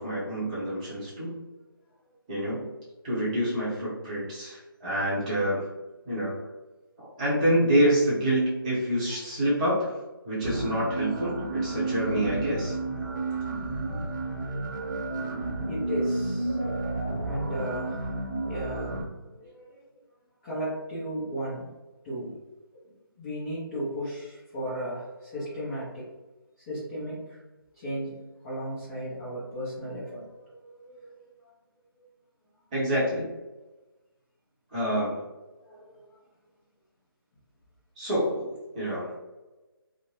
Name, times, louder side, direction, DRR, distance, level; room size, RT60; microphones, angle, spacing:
voice 1, 0.0-1.4 2.3-2.7 3.0-5.6 6.0-6.4 7.0-9.9 10.2-12.7 32.7-33.3 34.7-35.3 38.0-39.2, equal, 15° right, -9 dB, 0.8 m, -27 dB
sound 1, 10.4-19.0, right 2 dB, 55° right, 0.6 m, -31 dB
voice 2, 15.6-16.6 17.2-18.1 18.4-20.0 20.4-21.6 22.0-22.4 22.7-22.8 23.2-26.1 26.7-27.4 27.7-31.1 35.6-36.1, equal, 10° left, -13 dB, 0.6 m, -35 dB
2.6 x 2.1 x 3.0 m, 1.1 s
figure-of-eight pair, 165°, 13 cm